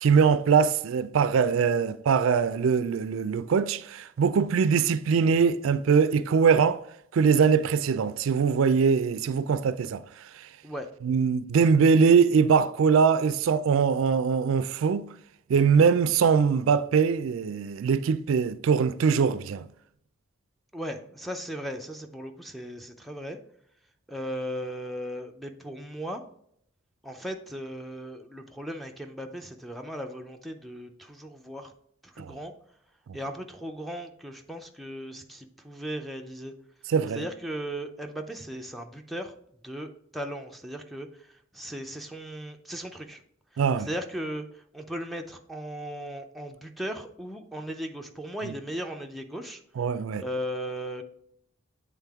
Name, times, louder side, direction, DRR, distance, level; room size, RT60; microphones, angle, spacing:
voice 1, 0.0-6.8 7.1-10.0 10.4-10.5 11.0-15.1 15.5-19.6 32.2-32.4 36.9-37.2 43.6-43.9 48.4-48.5 49.8-50.2, right 6 dB, 75° right, 0.3 m, -22 dB
voice 2, 20.7-23.4 24.1-26.2 27.0-31.7 32.0-32.5 33.1-36.5 37.1-39.3 39.6-43.2 43.8-49.6 50.2-51.0, equal, ahead, 0.4 m, -37 dB
8.3 x 3.6 x 3.5 m
head